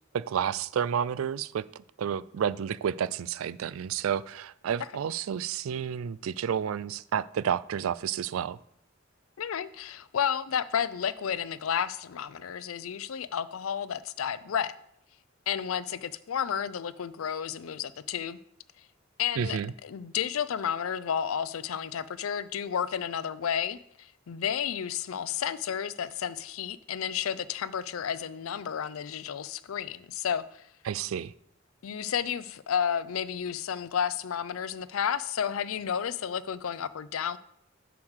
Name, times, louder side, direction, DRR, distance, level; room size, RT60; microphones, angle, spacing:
voice 1, 0.1-8.6 19.4-19.7 30.9-31.3, right 8 dB, 85° right, 0.3 m, -30 dB
voice 2, 9.4-14.7 15.5-18.4 19.2-30.6 31.8-37.4, left 8 dB, 85° left, 0.4 m, -32 dB
7.1 x 4.7 x 6.5 m
head